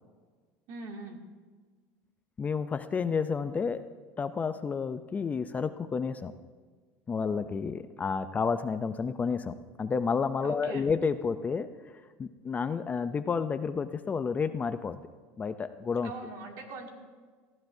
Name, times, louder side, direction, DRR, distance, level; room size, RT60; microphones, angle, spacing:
voice 1, 0.7-1.2 10.4-10.9 16.0-16.9, right 3 dB, 65° right, 2 dB, 2.3 m, -41 dB
voice 2, 2.4-3.9 4.2-6.3 7.1-11.7 12.2-15.0 15.4-16.1, left 5 dB, 25° left, 11 dB, 0.5 m, -30 dB
19.0 x 15.0 x 2.7 m, 1.5 s
supercardioid pair, 120°, 7 cm